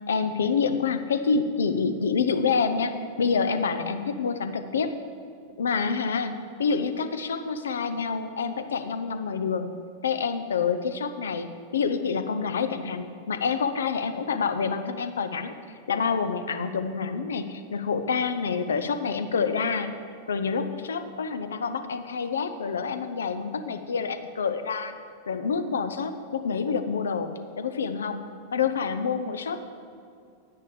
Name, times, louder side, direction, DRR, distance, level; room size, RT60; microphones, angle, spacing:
voice 1, 0.1-5.0 5.6-6.3 6.6-9.7 10.0-15.5 15.9-19.9 20.3-24.9 25.3-28.2 28.5-29.6, left 5 dB, 65° left, 9 dB, 0.7 m, -27 dB
9.8 x 9.7 x 5.0 m, 2.5 s
figure-of-eight pair, 90°, 0 cm